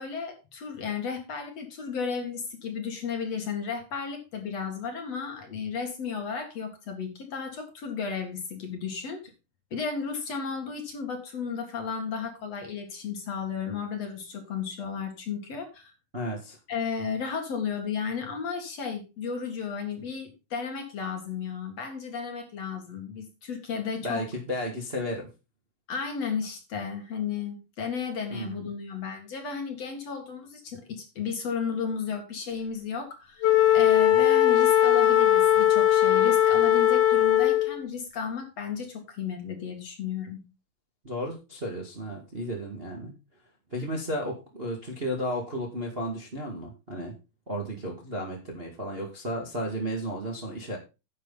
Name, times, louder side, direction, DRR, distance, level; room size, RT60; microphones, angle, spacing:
voice 1, 0.0-9.3 9.7-15.9 16.7-24.2 25.9-40.4, left 6 dB, 50° left, 4 dB, 2.9 m, -34 dB
voice 2, 16.1-16.6 24.0-25.3 28.3-28.6 41.0-43.1 43.7-47.1 47.5-50.8, equal, 20° right, 0 dB, 1.7 m, -33 dB
Wind instrument woodwind instrument, 33.4-37.8, left 11 dB, 70° left, 2.2 m, -20 dB
10.5 x 8.5 x 4.0 m, 0.28 s
omnidirectional pair, 4.1 m